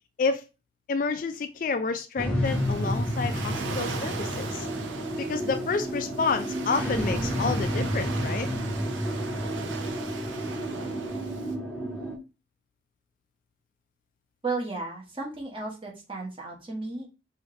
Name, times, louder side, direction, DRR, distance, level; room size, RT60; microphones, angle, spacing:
voice 1, 0.9-4.7 5.2-8.5, left 4 dB, 45° left, 9 dB, 0.3 m, -29 dB
sound 1, 2.2-12.2, equal, 5° left, 0.8 m, -30 dB
Waves surf, 2.4-11.5, right 5 dB, 85° right, 0.6 m, -39 dB
voice 2, 14.4-17.1, right 3 dB, 30° right, -1 dB, 1.3 m, -34 dB
4.8 x 2.7 x 3.1 m, 0.29 s
head